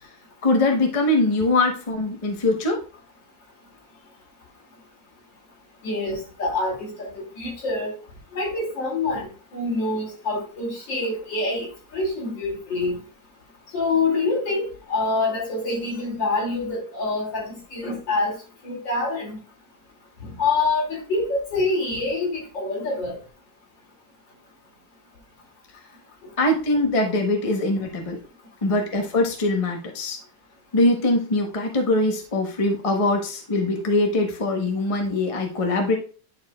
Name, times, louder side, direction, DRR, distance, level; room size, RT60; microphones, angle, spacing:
voice 1, 0.4-2.8 26.4-28.2 28.6-30.2 30.7-36.0, left 2 dB, 25° left, 2 dB, 0.8 m, -22 dB
voice 2, 5.8-7.9 8.3-9.3 9.5-12.9 13.7-18.4 18.6-19.4 20.2-23.2, left 3 dB, 75° left, -1 dB, 3.1 m, -26 dB
10.5 x 4.5 x 2.3 m, 0.37 s
omnidirectional pair, 2.0 m